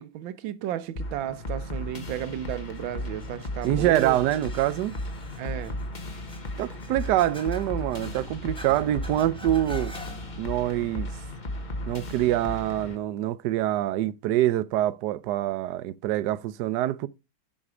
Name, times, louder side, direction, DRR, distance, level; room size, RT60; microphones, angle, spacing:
voice 1, 0.0-4.2 5.4-5.8, right 11 dB, 85° right, 1.5 m, -33 dB
sound 1, 1.0-13.0, left 1 dB, 30° left, 1.1 m, -35 dB
sound 2, 1.5-12.8, equal, 5° left, 1.2 m, -47 dB
voice 2, 3.6-5.0 6.6-9.9 10.4-11.1 11.9-17.1, right 13 dB, 70° right, 1.1 m, -25 dB
7.6 x 5.9 x 4.8 m
omnidirectional pair, 2.1 m